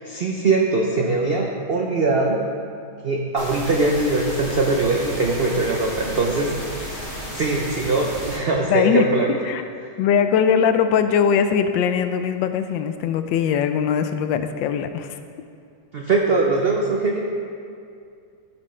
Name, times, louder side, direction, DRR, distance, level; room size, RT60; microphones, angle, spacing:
voice 1, 0.0-2.4 3.0-6.5 7.3-9.3 15.9-17.2, right 3 dB, 75° right, -1 dB, 0.5 m, -21 dB
sound 1, 3.4-8.4, equal, 50° right, 3.0 m, -33 dB
voice 2, 8.6-9.0 9.5-9.6 10.0-15.2, left 7 dB, 85° left, 9 dB, 1.3 m, -20 dB
13.0 x 6.0 x 3.2 m, 2.4 s
omnidirectional pair, 2.0 m